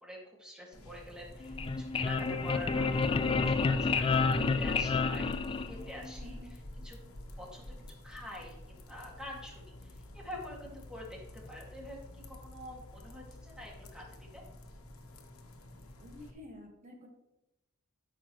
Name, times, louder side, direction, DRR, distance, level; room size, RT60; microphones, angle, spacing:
voice 1, 0.0-14.4, left 1 dB, 5° right, -2 dB, 2.0 m, -47 dB
sound 1, 0.7-16.3, left 1 dB, 80° left, 1.2 m, -48 dB
sound 2, 1.4-6.1, left 4 dB, 25° left, 0.3 m, -29 dB
voice 2, 6.2-6.5 16.0-17.1, left 1 dB, 35° right, 1 dB, 1.6 m, -50 dB
13.0 x 6.2 x 3.1 m, 0.94 s
head